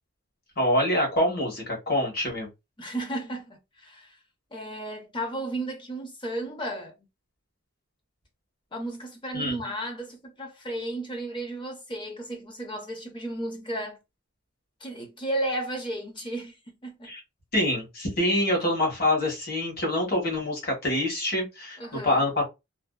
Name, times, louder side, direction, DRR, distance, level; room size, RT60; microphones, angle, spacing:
voice 1, 0.6-2.5 9.3-9.6 17.0-17.2 17.5-22.4, left 1 dB, 45° left, 1.1 m, -25 dB
voice 2, 2.8-4.2 4.5-6.9 8.7-14.0 14.8-17.1 21.8-22.2, right 1 dB, 25° left, 0.6 m, -34 dB
2.6 x 2.1 x 2.3 m
head